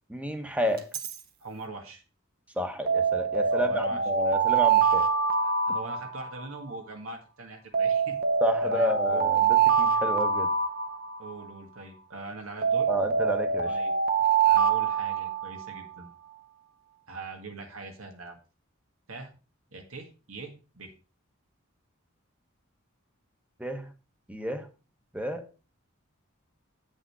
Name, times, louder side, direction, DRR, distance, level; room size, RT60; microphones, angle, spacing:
voice 1, 0.1-0.9 2.6-5.1 8.4-10.5 12.9-13.8 23.6-23.9 24.3-24.7 25.1-25.4, equal, 5° right, 8 dB, 1.0 m, -30 dB
Alarm, 0.8-1.2 2.9-6.6 7.7-11.5 12.6-15.8, right 6 dB, 45° right, 1.0 m, -25 dB
voice 2, 1.4-2.0 3.5-4.0 5.4-8.2 8.6-9.3 11.2-12.9 13.6-13.9 14.5-16.1 17.1-18.4 19.1-19.3 19.7-20.9, right 3 dB, 85° right, 4 dB, 1.7 m, -42 dB
8.6 x 6.3 x 4.7 m, 0.34 s
head